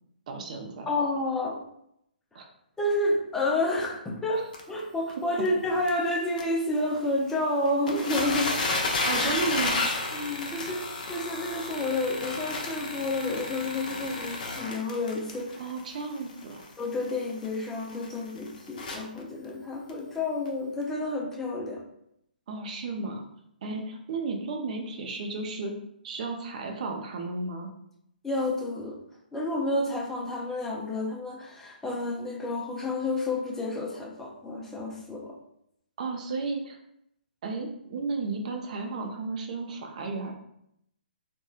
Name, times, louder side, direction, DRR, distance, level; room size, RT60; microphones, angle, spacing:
voice 1, 0.3-0.9 2.3-2.5 9.0-9.8 10.6-10.7 15.6-16.6 22.5-23.2 23.6-25.7 26.0-27.7 36.0-36.8 37.4-40.3, right 3 dB, 50° right, 3 dB, 0.5 m, -33 dB
voice 2, 0.9-1.6 2.8-8.5 10.1-15.6 16.8-21.8 23.7-23.8 28.2-29.0 29.3-35.4, left 2 dB, 5° left, -2 dB, 0.4 m, -30 dB
sound 1, 4.5-4.6 5.1-5.2 5.4-5.5 5.9-6.0 6.4-6.5 7.3-7.4 7.7-19.2 19.9-20.0 20.5-20.6, left 2 dB, 55° left, 0.5 m, -32 dB
2.9 x 2.2 x 2.3 m, 0.75 s
hypercardioid pair, 140°, 5 cm